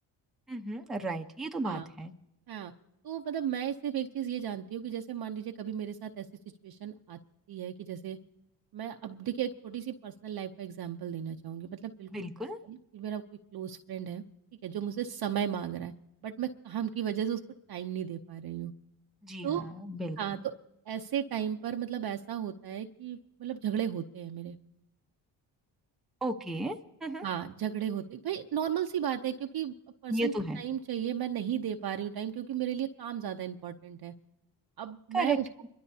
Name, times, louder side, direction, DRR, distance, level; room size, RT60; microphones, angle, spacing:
voice 1, 0.5-2.1 12.1-12.6 19.2-20.2 26.2-27.2 30.1-30.6 35.1-35.4, right 2 dB, ahead, 3 dB, 0.8 m, -34 dB
voice 2, 3.0-6.3 6.6-7.2 7.5-8.2 8.7-12.3 12.6-13.2 13.5-14.2 14.6-15.9 16.2-17.4 17.7-18.7 19.4-19.7 20.2-20.5 20.9-24.6 27.2-29.8 30.0-34.1 34.8-35.5, right 9 dB, 55° right, 4 dB, 0.7 m, -35 dB
25.0 x 12.5 x 2.7 m, 0.90 s
cardioid pair, 75°, 45 cm